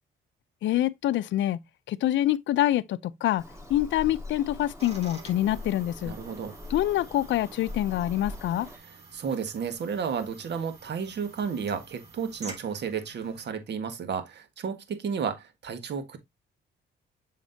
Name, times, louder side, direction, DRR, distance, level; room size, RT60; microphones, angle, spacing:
voice 1, 0.6-1.6 1.9-6.1 6.7-8.7, left 13 dB, 70° left, 0.5 m, -26 dB
Bird vocalization bird call bird song, 3.4-8.8, left 2 dB, 15° right, 3.0 m, -42 dB
sound 1, 4.8-13.5, right 3 dB, 30° right, 3.3 m, -49 dB
voice 2, 6.1-6.5 9.1-16.2, right 6 dB, 60° right, 1.6 m, -32 dB
7.2 x 6.5 x 2.7 m
cardioid pair, 90°, 20 cm